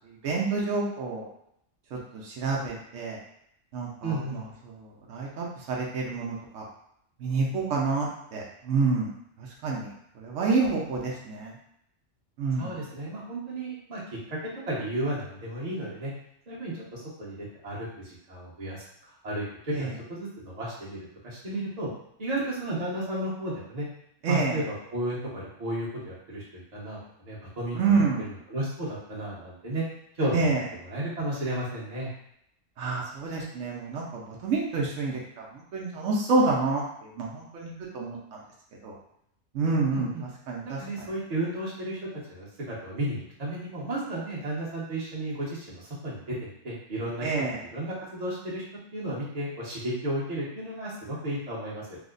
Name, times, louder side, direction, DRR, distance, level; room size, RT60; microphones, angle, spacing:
voice 1, 0.2-1.3 1.9-2.0 2.2-3.2 3.7-4.2 5.1-6.6 7.2-9.1 9.6-9.9 10.2-11.5 12.4-12.7 19.7-19.9 24.2-24.6 27.7-28.2 30.3-30.6 32.8-38.2 38.8-38.9 39.5-40.1 40.5-40.8 47.2-47.6, right 4 dB, 80° right, -3 dB, 1.0 m, -28 dB
voice 2, 4.0-4.4 12.6-14.0 14.3-14.4 14.7-16.1 16.5-21.9 22.2-23.9 24.3-29.8 30.1-30.5 30.8-32.1 39.9-40.2 40.6-47.3 47.6-48.6 48.9-52.0, right 1 dB, 35° right, -7 dB, 1.0 m, -33 dB
3.4 x 2.0 x 3.7 m, 0.75 s
omnidirectional pair, 1.3 m